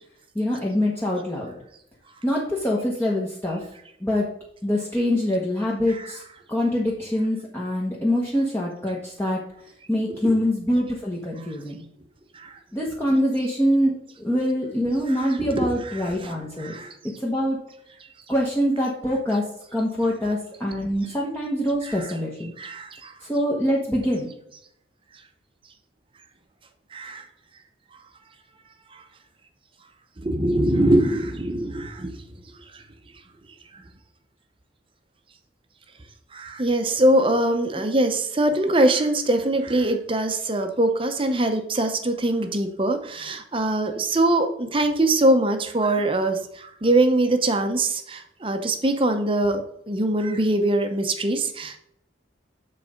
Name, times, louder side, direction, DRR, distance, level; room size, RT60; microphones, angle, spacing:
voice 1, 0.3-1.5 2.2-3.6 4.0-4.2 4.6-6.2 6.5-9.4 9.9-11.8 12.7-13.9 14.2-16.7 17.2-17.6 18.3-19.4 19.7-22.5 23.3-24.3, equal, 10° left, -4 dB, 1.1 m, -24 dB
voice 2, 15.1-16.9 21.8-22.1 22.6-23.1 26.9-27.2 30.2-32.2 36.3-49.6 49.9-51.8, right 1 dB, 30° right, 6 dB, 0.8 m, -23 dB
7.5 x 4.1 x 5.0 m, 0.73 s
head